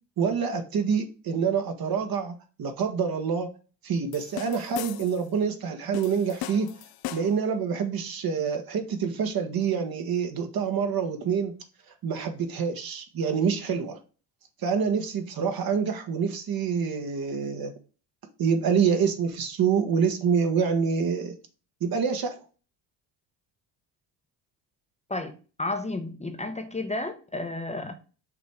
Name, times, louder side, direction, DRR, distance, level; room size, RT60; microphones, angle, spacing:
voice 1, 0.2-3.5 3.8-6.7 7.1-11.6 12.0-14.0 14.6-17.7 18.4-21.3 21.8-22.4, right 6 dB, 50° right, 1.5 m, -26 dB
sound 1, 4.1-5.3 5.9-7.5, left 14 dB, 55° left, 0.6 m, -38 dB
voice 2, 25.6-27.9, left 2 dB, 15° left, 0.9 m, -32 dB
5.9 x 3.4 x 4.8 m
supercardioid pair, 80°, 45 cm